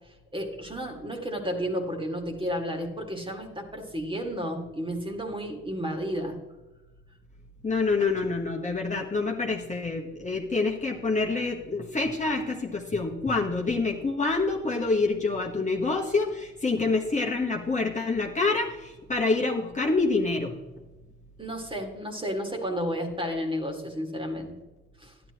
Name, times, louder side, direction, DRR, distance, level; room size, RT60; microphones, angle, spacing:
voice 1, 0.3-6.4 21.4-24.5 25.0-25.1, equal, 15° right, 2 dB, 2.1 m, -32 dB
voice 2, 7.6-20.5, left 3 dB, 25° left, -1 dB, 1.4 m, -27 dB
12.0 x 11.0 x 3.0 m, 1.1 s
cardioid pair, 90°, 30 cm